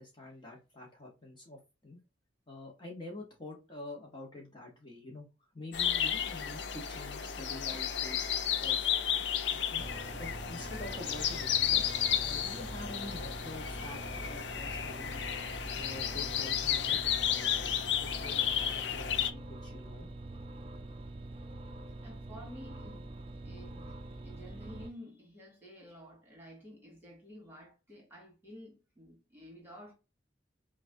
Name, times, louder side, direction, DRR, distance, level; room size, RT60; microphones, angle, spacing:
voice 1, 0.0-2.0 2.5-5.3 5.5-8.9 9.5-9.9 10.2-11.8 12.2-15.3 15.7-20.1, left 2 dB, 25° left, 1.0 m, -47 dB
sound 1, 5.7-19.3, left 9 dB, 65° left, 0.6 m, -33 dB
sound 2, 9.8-24.9, right 2 dB, 30° right, 0.5 m, -45 dB
voice 2, 22.0-23.2 23.4-29.9, equal, 10° right, 2.2 m, -51 dB
5.8 x 2.4 x 2.6 m
head